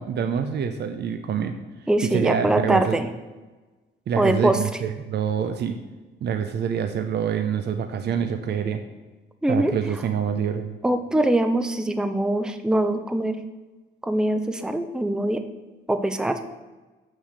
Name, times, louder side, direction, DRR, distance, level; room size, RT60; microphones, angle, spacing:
voice 1, 0.0-1.5 2.1-3.0 4.1-5.8 6.2-8.8 9.5-10.8, right 7 dB, 55° right, 7 dB, 0.7 m, -26 dB
voice 2, 1.9-3.1 4.2-4.6 9.4-9.7 10.8-13.4 14.0-15.4 15.9-16.5, right 1 dB, 5° right, 9 dB, 0.6 m, -23 dB
6.5 x 6.4 x 6.5 m, 1.2 s
cardioid pair, 90°, 20 cm